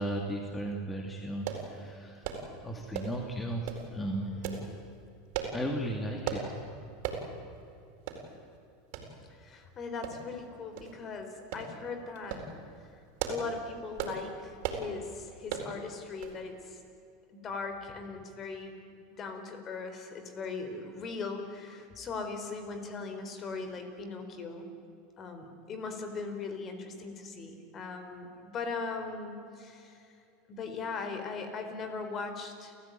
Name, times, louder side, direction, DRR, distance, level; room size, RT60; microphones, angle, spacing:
voice 1, 0.0-2.2 2.6-4.8 5.5-6.5, right 1 dB, 15° left, 2 dB, 2.7 m, -35 dB
sound 1, 1.5-1.7 2.2-2.5 2.9-3.2 3.6-3.9 4.4-4.6 5.3-5.6 6.2-6.5 7.0-7.2 7.6-7.7 8.1-8.2 8.9-9.1 10.0-10.4 10.8-10.9 11.5-11.7 12.1-12.5 13.0-13.5 14.0-14.2 14.6-14.9 15.5-15.7 16.2-16.4 16.7-16.8, right 9 dB, 65° right, 4.4 m, -36 dB
voice 2, 9.3-12.5 13.3-16.8 17.3-18.8 19.2-24.7 25.2-30.1 30.5-32.7, left 4 dB, 35° left, 7 dB, 4.1 m, -39 dB
29.5 x 14.5 x 9.4 m, 2.5 s
hypercardioid pair, 100°, 0 cm